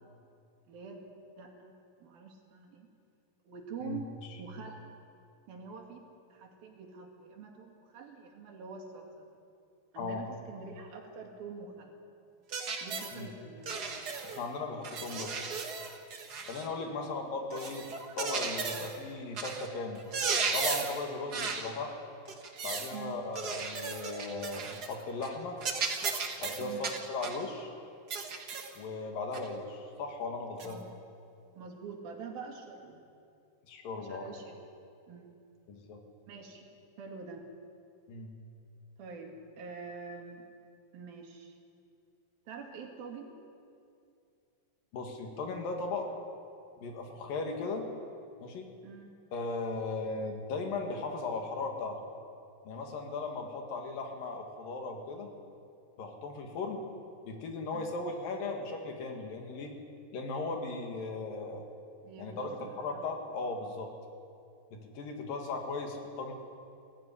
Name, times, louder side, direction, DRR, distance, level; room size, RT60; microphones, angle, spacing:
voice 1, 0.7-1.1 1.4-1.7 2.0-2.9 3.4-4.1 4.4-4.8 5.5-6.0 6.3-9.3 9.9-11.9 12.8-13.9 16.8-17.1 22.9-23.2 26.6-26.8 30.6-30.8 31.5-33.0 34.0-34.5 35.1-35.3 36.3-36.7 37.0-37.5 39.0-40.4 40.9-41.6 42.5-43.3 48.8-49.1 57.7-57.9 62.0-63.0, right 5 dB, 85° right, 1 dB, 4.3 m, -45 dB
voice 2, 3.8-4.3 10.0-10.2 13.1-13.3 14.2-15.4 16.5-17.9 18.2-20.0 20.5-22.0 22.6-25.6 26.4-27.7 28.8-30.8 33.7-34.3 35.7-36.0 38.1-38.3 44.9-46.1 46.8-47.9 48.4-48.7 49.3-52.0 52.7-55.3 56.0-56.9 57.2-59.7 60.1-61.7 62.2-63.9 64.7-66.3, left 3 dB, 70° left, 3 dB, 3.7 m, -37 dB
sound 1, 12.5-13.2 13.6-14.4 14.8-16.7 17.5-19.0 19.4-19.7 20.0-21.0 21.3-21.7 22.3-22.9 23.3-24.9 25.2-25.4 25.6-27.4 28.1-28.8 29.3-29.5 30.6-30.7, right 5 dB, 55° right, 1.0 m, -35 dB
21.0 x 14.5 x 10.0 m, 2.5 s
omnidirectional pair, 4.1 m